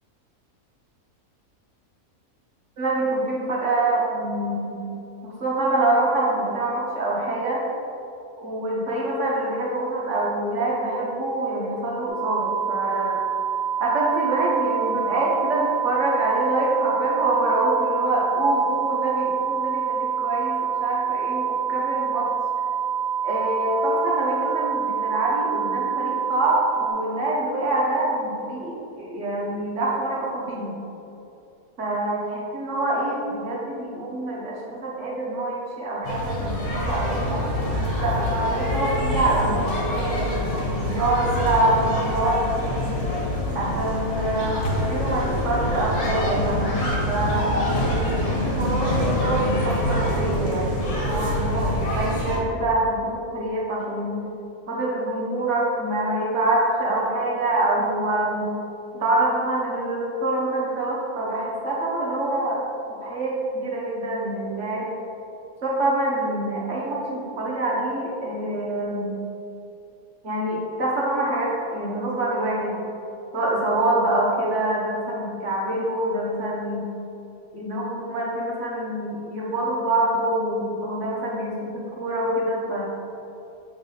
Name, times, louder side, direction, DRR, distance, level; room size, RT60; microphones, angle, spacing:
voice 1, 2.8-4.8 5.2-7.6 8.4-13.2 13.8-22.3 23.2-30.8 31.8-37.5 38.0-43.1 43.5-47.5 48.3-54.2 54.7-58.5 58.9-62.6 62.9-64.9 65.6-69.1 70.2-72.8 73.3-76.9 77.5-82.8, right 1 dB, 55° right, -4 dB, 1.5 m, -25 dB
sound 1, 12.1-26.9, right 8 dB, 75° right, 1.1 m, -26 dB
sound 2, 36.0-52.4, left 1 dB, 55° left, 1.5 m, -25 dB
7.2 x 3.5 x 3.9 m, 2.8 s
omnidirectional pair, 1.5 m